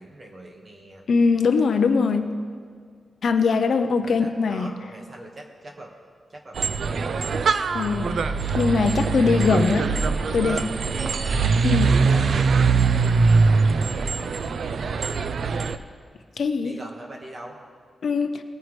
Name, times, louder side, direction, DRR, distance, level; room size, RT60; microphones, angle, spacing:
voice 1, 0.0-1.0 4.0-5.9 6.3-7.4 9.4-12.2 16.6-17.6, right 1 dB, 30° right, 1 dB, 1.5 m, -42 dB
voice 2, 1.1-2.4 3.2-4.7 7.7-9.9 10.3-10.6 11.6-11.9 16.4-16.8 18.0-18.4, left 5 dB, 55° left, 7 dB, 0.6 m, -22 dB
sound 1, 6.6-15.8, right 4 dB, 60° right, 0.4 m, -22 dB
19.0 x 9.2 x 3.2 m, 2.1 s
wide cardioid pair, 165°, 0 cm